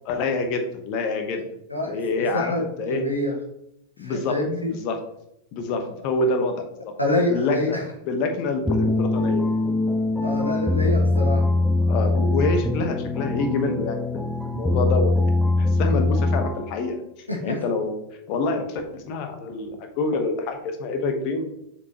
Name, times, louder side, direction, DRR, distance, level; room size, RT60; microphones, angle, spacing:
voice 1, 0.1-1.4 1.9-2.5 2.8-3.0 4.0-4.4 4.7-5.0 5.5-6.6 7.1-7.8 8.1-9.4 11.8-15.3 15.6-17.0 17.4-18.0 18.3-21.5, left 3 dB, 45° left, 5 dB, 1.1 m, -26 dB
voice 2, 1.7-2.6 2.9-3.3 4.0-4.6 7.0-7.8 10.2-11.5 17.3-17.6, left 2 dB, 85° left, -1 dB, 1.6 m, -26 dB
sound 1, 8.7-16.8, left 2 dB, 5° left, 0.5 m, -22 dB
6.9 x 4.7 x 3.0 m, 0.79 s
figure-of-eight pair, 90°, 0 cm